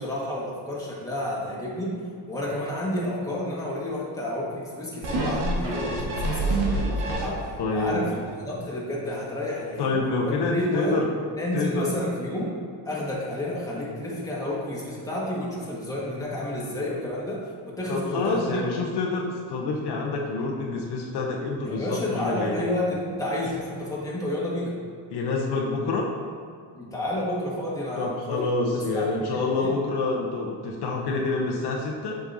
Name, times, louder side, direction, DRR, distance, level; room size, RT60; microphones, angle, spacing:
voice 1, 0.0-2.0 2.3-7.4 7.7-10.0 10.2-11.0 11.4-12.5 12.8-18.6 21.6-24.7 26.7-29.7, left 1 dB, 10° left, -6 dB, 1.5 m, -30 dB
sound 1, 5.0-7.7 8.2-8.3, right 2 dB, 90° right, 1.3 m, -27 dB
voice 2, 7.6-8.2 9.8-11.1 11.5-11.9 17.9-22.6 25.1-26.1 28.0-32.2, left 3 dB, 60° left, -1 dB, 0.8 m, -27 dB
7.5 x 5.2 x 2.6 m, 2.2 s
cardioid pair, 125°, 44 cm